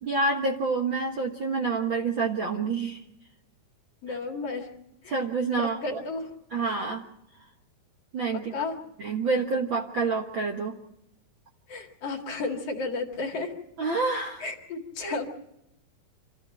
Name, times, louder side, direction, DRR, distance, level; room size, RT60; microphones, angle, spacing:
voice 1, 0.0-3.0 4.1-4.2 5.1-6.0 6.5-7.1 8.1-8.5 9.0-10.8 13.8-14.5 15.0-15.2, right 4 dB, 50° right, 2 dB, 1.5 m, -28 dB
voice 2, 4.0-4.7 5.0-5.2 5.5-6.3 8.5-8.8 11.7-13.5 14.4-15.3, left 3 dB, 50° left, 2 dB, 2.8 m, -33 dB
27.0 x 14.0 x 7.7 m, 0.86 s
omnidirectional pair, 4.0 m